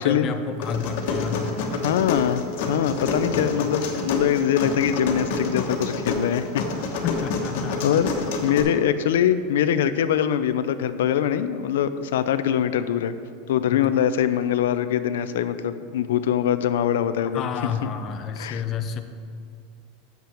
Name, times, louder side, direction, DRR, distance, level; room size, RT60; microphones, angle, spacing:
voice 1, 0.0-1.5 7.0-7.8 8.5-8.6 13.7-13.9 17.3-19.0, left 6 dB, 20° left, 7 dB, 0.5 m, -30 dB
sound 1, 0.6-8.6, left 3 dB, 55° left, 1.2 m, -28 dB
voice 2, 1.8-6.6 7.8-8.1 8.4-13.1 13.5-17.4 18.4-18.6, left 9 dB, 85° left, 11 dB, 0.4 m, -23 dB
7.5 x 5.7 x 7.0 m, 2.3 s
supercardioid pair, 180°, 0 cm